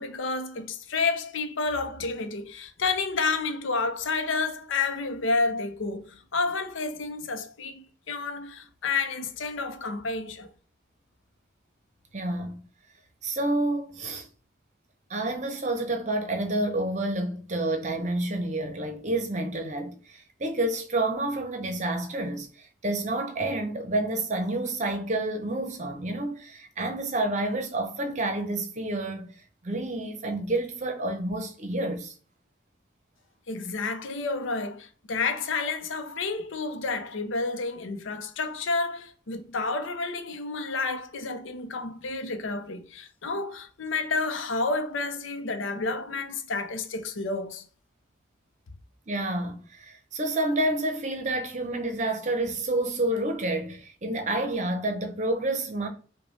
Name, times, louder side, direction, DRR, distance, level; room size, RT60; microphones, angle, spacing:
voice 1, 0.0-10.5 33.5-47.7, left 3 dB, 85° left, 0.6 m, -30 dB
voice 2, 12.1-12.6 13.2-14.3 15.1-29.4 29.6-32.1 49.1-55.9, right 2 dB, 35° right, 0.7 m, -29 dB
5.1 x 2.2 x 3.1 m
head